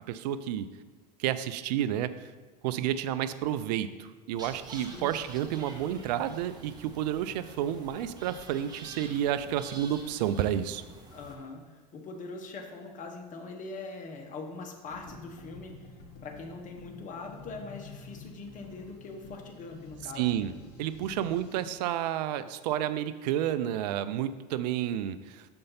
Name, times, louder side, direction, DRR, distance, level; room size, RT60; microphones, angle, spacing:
voice 1, 0.1-0.7 1.2-2.3 2.6-10.8 20.2-20.5 20.8-25.5, right 11 dB, 80° right, 12 dB, 0.5 m, -30 dB
sound 1, 4.3-11.3, right 2 dB, 20° right, 1.3 m, -48 dB
voice 2, 11.1-15.9 16.2-20.5, left 3 dB, 40° left, 2 dB, 1.1 m, -42 dB
sound 2, 14.8-21.7, left 4 dB, 70° left, 1.6 m, -49 dB
6.5 x 4.4 x 5.6 m, 1.3 s
supercardioid pair, 100°, 21 cm